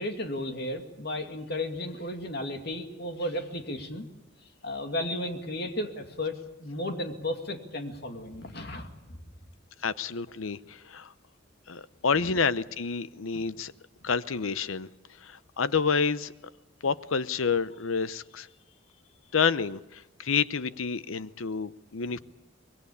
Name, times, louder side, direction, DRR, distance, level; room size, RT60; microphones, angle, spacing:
voice 1, 0.0-4.1 4.6-9.2 12.2-12.4 13.3-13.5, left 1 dB, 55° left, 5 dB, 2.4 m, -34 dB
voice 2, 9.8-11.1 11.7-13.7 14.0-14.9 15.2-16.3 16.8-18.5 19.3-22.2, left 5 dB, 85° left, 15 dB, 0.8 m, -29 dB
24.5 x 21.5 x 8.6 m, 0.99 s
head